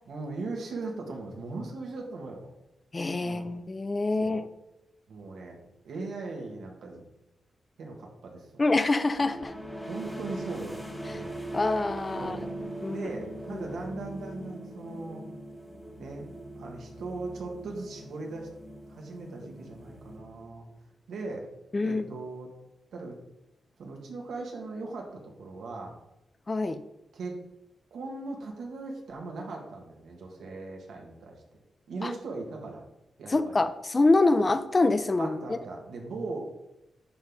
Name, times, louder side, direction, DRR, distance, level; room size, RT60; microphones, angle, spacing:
voice 1, 0.1-2.5 3.2-3.5 4.2-4.4 5.1-5.6 5.8-7.0 7.8-8.6 9.9-11.4 12.2-12.4 12.9-15.2 16.0-16.3 16.5-18.5 18.9-20.7 21.1-21.5 21.8-22.5 22.9-23.2 23.8-25.9 27.1-27.4 27.9-31.4 31.9-32.8 33.2-33.6 35.2-36.5, right 3 dB, 90° right, 1 dB, 1.7 m, -39 dB
voice 2, 2.9-4.5 8.6-9.5 11.1-11.2 11.5-12.4 12.8-13.1 13.5-13.7 21.7-22.1 26.5-26.8 32.0-32.1 33.3-35.6, left 2 dB, 25° left, 11 dB, 0.5 m, -26 dB
sound 1, 9.2-20.7, right 1 dB, 5° left, 1.1 m, -41 dB
10.5 x 4.1 x 3.6 m, 0.88 s
wide cardioid pair, 120°, 0 cm